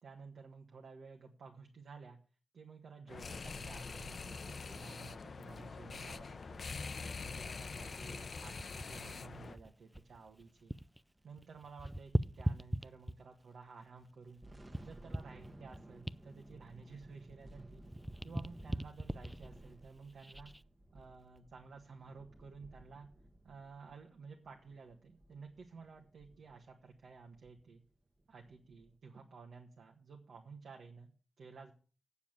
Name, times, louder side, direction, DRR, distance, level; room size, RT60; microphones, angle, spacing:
voice 1, 0.0-2.2 2.5-6.6 7.2-10.8 11.2-14.4 14.8-17.8 18.2-20.5 20.9-23.1 23.4-27.8 28.3-31.1 31.4-31.7, right 4 dB, 85° right, 1 dB, 1.5 m, -53 dB
sound 1, 3.1-9.6, left 4 dB, 60° left, 0.6 m, -44 dB
sound 2, 8.3-11.0 11.3-13.4 14.0-17.5 17.8-20.6 21.2-21.4, equal, 5° right, 0.4 m, -41 dB
sound 3, 10.4-13.2 13.5-13.6 14.1-28.9, right 1 dB, 30° right, 1.3 m, -58 dB
8.6 x 7.1 x 7.4 m, 0.38 s
wide cardioid pair, 95°, 0 cm